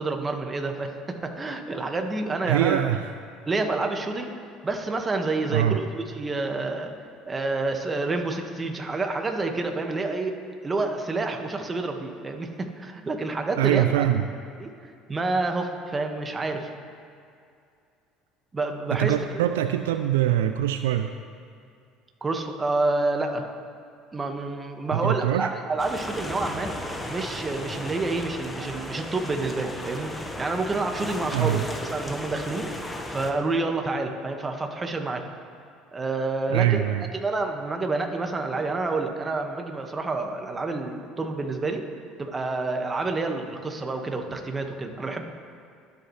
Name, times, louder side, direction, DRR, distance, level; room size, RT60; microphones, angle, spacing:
voice 1, 0.0-2.9 3.4-4.3 4.6-6.9 7.2-10.3 10.6-14.0 14.6-14.7 15.1-16.7 18.5-19.2 22.2-23.4 24.1-26.7 27.0-32.7 33.1-35.2 35.9-41.8 42.2-45.2, right 3 dB, 25° right, 4 dB, 1.7 m, -28 dB
voice 2, 2.4-3.1 5.5-5.8 13.6-14.3 18.9-21.1 24.9-25.5 31.3-31.6 36.5-37.1, right 12 dB, 85° right, 8 dB, 0.4 m, -23 dB
sound 1, 25.8-33.3, left 1 dB, 15° left, 1.4 m, -35 dB
24.0 x 8.4 x 3.3 m, 2.4 s
hypercardioid pair, 70°, 0 cm